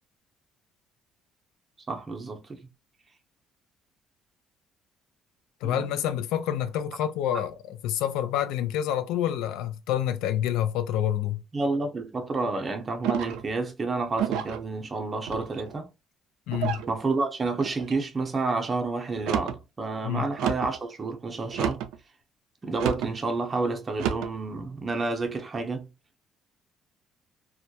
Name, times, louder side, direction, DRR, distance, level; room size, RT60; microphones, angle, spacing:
voice 1, 1.9-2.6 5.6-5.9 11.5-15.9 16.9-21.8 22.6-25.9, right 3 dB, 30° right, 0.6 m, -30 dB
voice 2, 5.6-11.4 16.5-16.8 20.0-20.3, left 11 dB, 90° left, 0.3 m, -28 dB
sound 1, 13.0-13.5 14.2-14.6 15.3-15.8 16.5-16.9 17.6-18.0 19.1-19.6 20.4-20.8 21.5-22.0 22.8-23.1 23.9-24.3, right 9 dB, 90° right, 0.3 m, -30 dB
2.2 x 2.1 x 2.7 m
cardioid pair, 105°, 0 cm